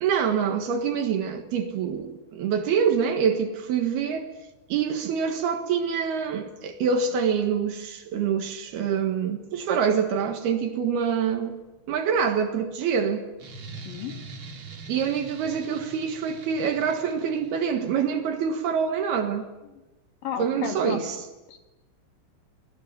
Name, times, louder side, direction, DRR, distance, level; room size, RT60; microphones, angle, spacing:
voice 1, 0.0-4.3 4.7-11.6 11.9-13.3 14.9-19.5 20.4-21.2, right 7 dB, 65° right, 3.1 m, -25 dB
sound 1, 13.4-17.9, right 3 dB, 40° right, 2.1 m, -43 dB
voice 2, 13.9-14.2 20.2-21.1 21.5-21.6, left 6 dB, 55° left, 3.6 m, -33 dB
28.5 x 21.5 x 9.1 m
omnidirectional pair, 5.6 m